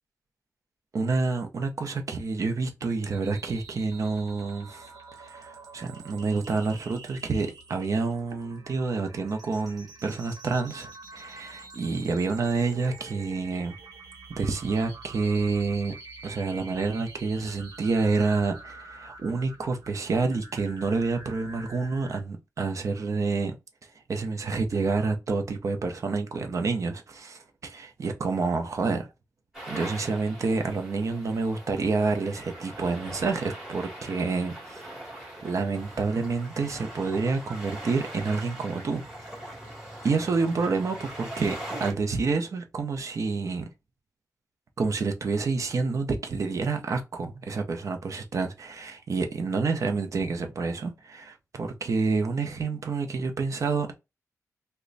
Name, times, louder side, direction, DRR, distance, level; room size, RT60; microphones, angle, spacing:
voice 1, 0.9-4.9 5.2-13.7 14.4-15.9 16.2-23.6 24.1-29.1 29.7-34.8 35.4-39.0 40.0-43.7 44.8-54.0, right 4 dB, 60° right, 0.7 m, -28 dB
sound 1, 3.0-22.2, right 3 dB, 90° right, 1.1 m, -47 dB
sound 2, 29.5-41.9, right 1 dB, 10° right, 1.8 m, -41 dB
3.1 x 2.2 x 3.9 m
wide cardioid pair, 105°, 6 cm